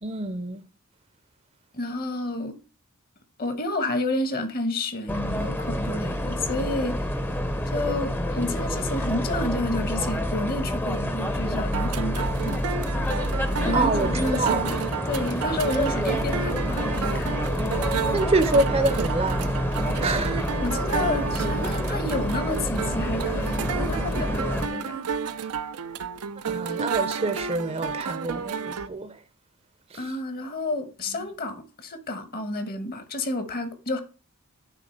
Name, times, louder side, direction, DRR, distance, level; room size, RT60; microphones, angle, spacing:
voice 1, 0.0-0.6 13.7-14.7 18.1-19.5 20.0-20.5 26.4-29.2 29.9-30.1 31.1-31.3, right 2 dB, 25° right, 0.6 m, -26 dB
voice 2, 1.7-2.5 3.4-7.1 7.7-12.6 13.6-17.4 20.6-25.1 29.9-34.0, left 2 dB, 45° left, 1.1 m, -30 dB
sound 1, 5.1-24.7, equal, 10° left, 0.7 m, -28 dB
sound 2, 11.7-28.9, right 6 dB, 85° right, 0.6 m, -31 dB
9.2 x 3.8 x 5.7 m
head